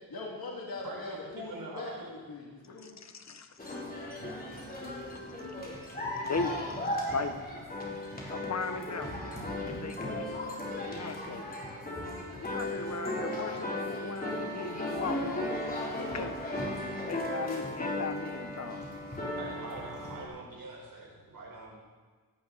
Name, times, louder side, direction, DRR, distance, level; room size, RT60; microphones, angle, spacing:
voice 1, 0.1-3.0 7.0-7.1 8.1-8.2 9.7-9.9 10.3-10.4 10.7-11.1 11.9-12.9 19.2-19.4, left 3 dB, 70° left, -3 dB, 2.5 m, -44 dB
voice 2, 0.8-2.1 19.4-21.8, right 2 dB, 65° right, -2 dB, 4.5 m, -44 dB
voice 3, 2.7-3.6 4.7-4.8 6.2-6.6 6.9-7.4 8.3-9.4 9.6-10.5 10.8-11.5 12.4-15.6 16.0-16.4 17.0-18.9, left 4 dB, 45° left, 7 dB, 1.2 m, -38 dB
sound 1, 3.6-20.2, left 1 dB, 25° left, 3.4 m, -36 dB
17.0 x 16.5 x 4.1 m, 1.4 s
wide cardioid pair, 145°, 38 cm